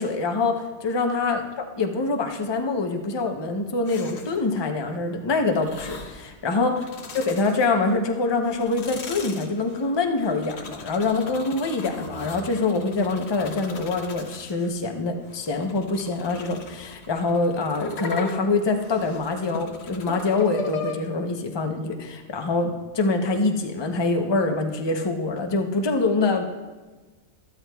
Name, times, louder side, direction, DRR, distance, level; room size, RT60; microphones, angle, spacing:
voice 1, 0.0-6.8 7.1-26.4, left 3 dB, 25° left, 4 dB, 0.6 m, -25 dB
sound 1, 3.9-4.5 5.5-6.3 6.7-8.0 8.4-14.7 15.2-20.9, left 4 dB, 55° left, 1.1 m, -38 dB
13.0 x 13.0 x 2.3 m, 1.3 s
omnidirectional pair, 1.4 m